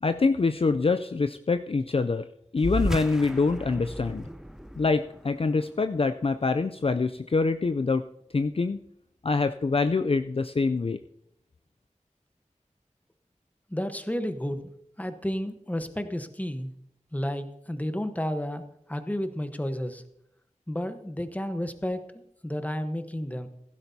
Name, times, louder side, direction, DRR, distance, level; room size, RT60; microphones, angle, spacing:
voice 1, 0.0-2.3 2.5-4.2 4.8-8.0 8.3-8.8 9.2-11.0, left 4 dB, 45° left, 9 dB, 0.4 m, -25 dB
sound 1, 2.6-7.5, equal, 5° right, 0.6 m, -35 dB
voice 2, 13.7-14.7 15.0-16.7 17.1-18.6 18.9-20.0 20.7-23.5, equal, 10° left, 8 dB, 1.0 m, -32 dB
15.5 x 12.0 x 2.8 m, 0.76 s
wide cardioid pair, 50°, 13 cm